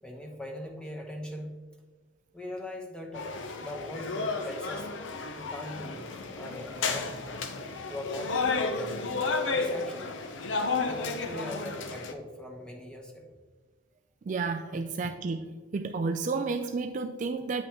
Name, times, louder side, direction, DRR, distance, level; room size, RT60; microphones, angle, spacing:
voice 1, 0.0-1.5 2.3-3.3 3.6-4.9 5.4-6.1 6.4-7.2 7.9-9.1 9.5-10.2 10.8-13.3 14.6-14.8, left 1 dB, 5° left, 0 dB, 1.0 m, -41 dB
sound 1, 3.1-12.1, left 4 dB, 65° left, 0.6 m, -32 dB
voice 2, 14.3-15.5 15.7-17.6, right 4 dB, 40° right, 7 dB, 0.3 m, -31 dB
9.2 x 5.4 x 2.9 m, 1.4 s
head